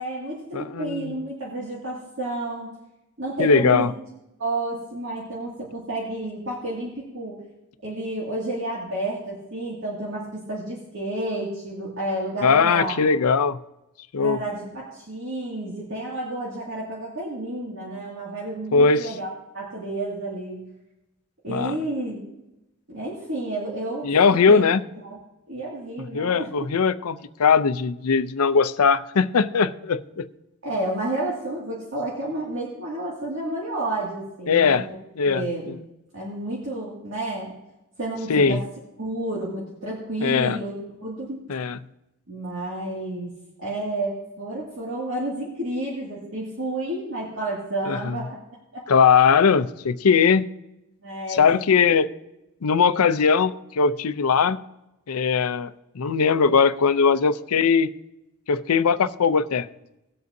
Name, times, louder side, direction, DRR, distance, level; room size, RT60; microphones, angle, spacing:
voice 1, 0.0-2.8 3.2-3.9 4.4-7.3 7.8-13.0 14.2-19.3 19.5-20.7 21.4-22.2 22.9-24.1 24.5-24.6 25.0-25.2 25.5-26.5 30.6-34.9 35.3-35.7 36.1-37.6 38.0-38.6 39.0-40.7 41.0-41.4 42.3-43.3 43.6-48.4 51.0-51.4 51.8-51.9, right 1 dB, 60° right, -5 dB, 2.2 m, -30 dB
voice 2, 0.5-1.1 3.4-3.9 12.4-13.6 14.1-14.4 18.7-19.1 21.5-21.7 24.0-24.8 26.1-30.3 34.5-34.9 35.2-35.7 38.3-38.6 40.2-40.6 41.5-41.8 47.9-48.2 48.9-50.4 51.3-52.1 52.6-54.6 55.1-55.7 56.0-57.9 58.5-59.7, left 5 dB, 80° left, 14 dB, 0.5 m, -20 dB
19.0 x 7.7 x 2.7 m, 0.94 s
head